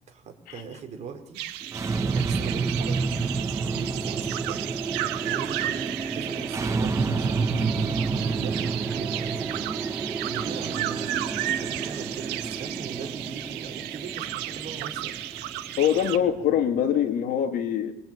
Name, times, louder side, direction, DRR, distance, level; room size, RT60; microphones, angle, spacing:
voice 1, 0.1-1.4 2.1-3.1 3.7-4.6 5.2-15.2, right 6 dB, 40° right, 5 dB, 4.9 m, -40 dB
sound 1, 1.3-16.2, right 13 dB, 80° right, 1.8 m, -34 dB
sound 2, 1.6-16.9, right 4 dB, 20° right, 1.7 m, -30 dB
voice 2, 15.8-17.9, left 9 dB, 60° left, 5 dB, 3.4 m, -24 dB
27.0 x 21.5 x 9.3 m, 0.81 s
cardioid pair, 140°, 17 cm